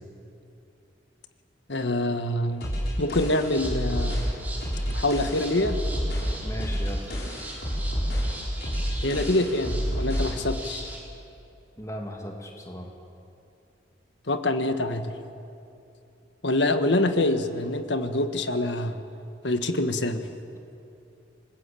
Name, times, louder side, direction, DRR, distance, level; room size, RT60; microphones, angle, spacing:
voice 1, 1.7-2.7 3.0-4.2 4.9-5.8 9.0-10.9 14.3-15.1 16.4-19.0 19.4-20.2, left 1 dB, 70° left, 8 dB, 1.5 m, -25 dB
sound 1, 2.6-10.4, equal, 55° left, 6.8 m, -29 dB
sound 2, 3.4-11.0, right 1 dB, 10° right, 3.9 m, -41 dB
voice 2, 6.4-7.0 11.8-12.9, equal, 15° left, 1 dB, 2.3 m, -37 dB
29.0 x 19.5 x 8.5 m, 2.7 s
head